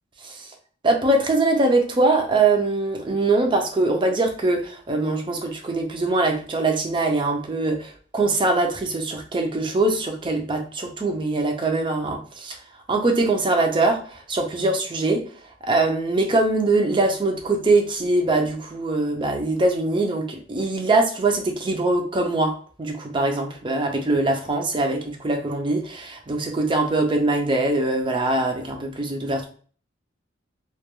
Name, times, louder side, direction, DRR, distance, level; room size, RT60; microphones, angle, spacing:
voice 1, 0.8-12.5 12.9-15.2 15.6-29.4, right 2 dB, 25° right, 3 dB, 0.4 m, -22 dB
2.3 x 2.2 x 2.9 m, 0.43 s
head